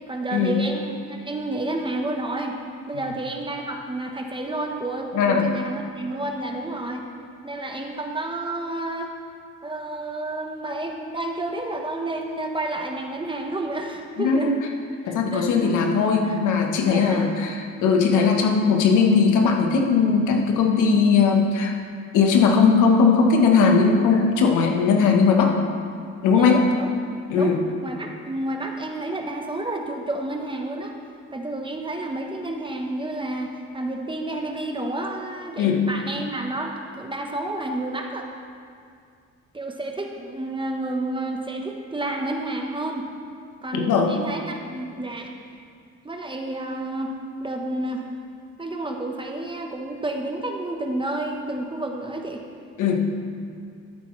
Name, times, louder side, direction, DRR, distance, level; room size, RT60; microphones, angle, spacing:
voice 1, 0.1-2.6 2.9-7.0 7.4-9.1 9.6-14.6 15.0-15.8 16.2-16.4 16.8-17.3 26.4-26.9 27.4-27.5 27.8-31.0 31.3-38.3 39.5-43.1 43.6-45.3 46.0-47.1 47.4-48.1 48.6-52.4, right 2 dB, 15° right, 2 dB, 1.1 m, -30 dB
voice 2, 5.1-5.4 14.2-14.5 15.0-21.8 22.1-25.6 26.2-26.6 27.3-27.6 35.6-35.8 43.7-44.1 52.8-53.1, left 5 dB, 90° left, 2 dB, 1.2 m, -19 dB
13.5 x 8.1 x 3.2 m, 2.3 s
cardioid pair, 90°, 30 cm